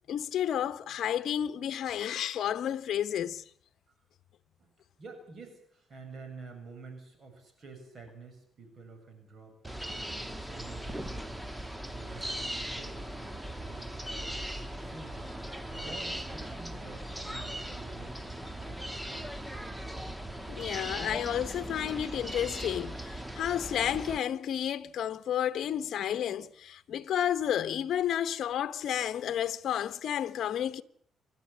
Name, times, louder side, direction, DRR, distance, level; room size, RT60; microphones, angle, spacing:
voice 1, 0.1-3.4 20.5-30.8, left 10 dB, 70° left, 0.9 m, -31 dB
voice 2, 5.0-9.6 10.1-11.5 11.9-15.3 15.7-19.3, right 4 dB, 50° right, 7.1 m, -49 dB
sound 1, 9.6-24.2, right 1 dB, 5° right, 1.2 m, -39 dB
28.0 x 12.5 x 8.6 m
cardioid pair, 90°, 0 cm